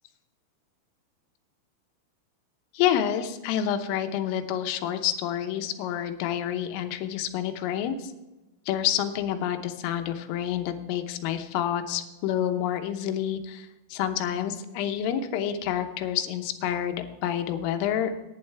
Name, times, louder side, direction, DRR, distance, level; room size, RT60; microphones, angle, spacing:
voice 1, 2.8-8.1 8.7-18.1, left 10 dB, 85° left, 7 dB, 3.5 m, -28 dB
16.5 x 9.7 x 3.4 m, 1.1 s
omnidirectional pair, 5.7 m